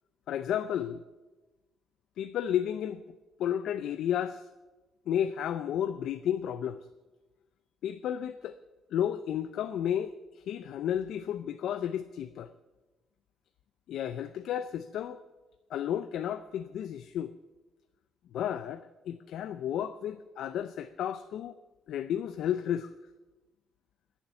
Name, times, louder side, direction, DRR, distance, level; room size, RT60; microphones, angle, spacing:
voice 1, 0.3-1.0 2.2-3.0 3.4-4.5 5.1-6.9 7.8-8.6 8.9-12.5 13.9-15.2 15.7-17.3 18.3-21.6 21.9-22.9, left 10 dB, 80° left, 11 dB, 0.5 m, -32 dB
21.5 x 7.3 x 6.9 m, 1.2 s
cardioid pair, 90°, 0 cm